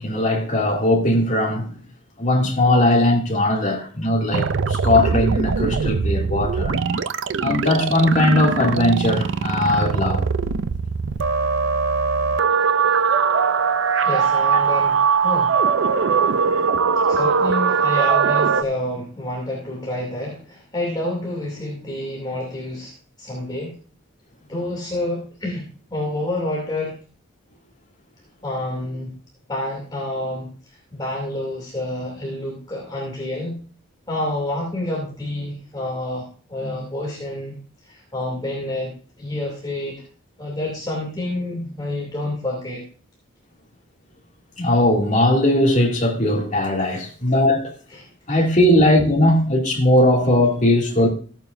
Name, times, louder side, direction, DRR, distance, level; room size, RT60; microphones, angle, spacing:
voice 1, 0.0-1.7 2.2-7.0 7.4-10.2 44.6-47.7 48.3-51.1, left 1 dB, 35° left, 2.4 m, -19 dB
sound 1, 4.3-18.6, right 5 dB, 60° right, 0.4 m, -21 dB
voice 2, 14.0-15.6 17.1-23.7 24.5-25.6 25.9-27.0 28.4-29.1 29.5-30.5 30.9-33.6 34.1-37.5 37.8-40.0 40.4-42.8 47.9-48.4, left 1 dB, 20° left, 2.6 m, -28 dB
15.0 x 8.9 x 2.6 m
head